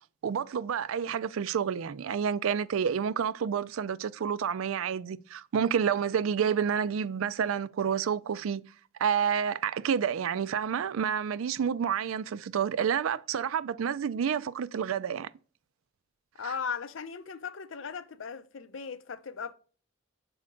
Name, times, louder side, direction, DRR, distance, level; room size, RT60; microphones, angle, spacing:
voice 1, 0.2-8.6 9.0-15.3 16.4-16.5, right 7 dB, 85° right, 0.4 m, -29 dB
voice 2, 16.4-19.5, left 6 dB, 75° left, 0.6 m, -37 dB
6.3 x 4.3 x 3.7 m
head